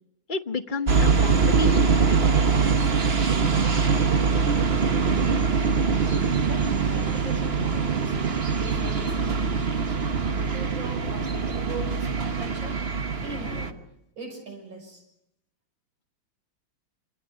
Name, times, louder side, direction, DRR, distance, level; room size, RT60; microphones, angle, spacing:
voice 1, 0.3-2.2, left 3 dB, 30° left, 8 dB, 1.0 m, -31 dB
sound 1, 0.9-13.7, right 5 dB, 35° right, 1.3 m, -23 dB
voice 2, 6.4-8.2 8.6-12.8 13.2-13.8 14.2-15.0, right 3 dB, 85° right, 3 dB, 7.1 m, -40 dB
28.0 x 27.0 x 5.1 m, 0.80 s
omnidirectional pair, 2.1 m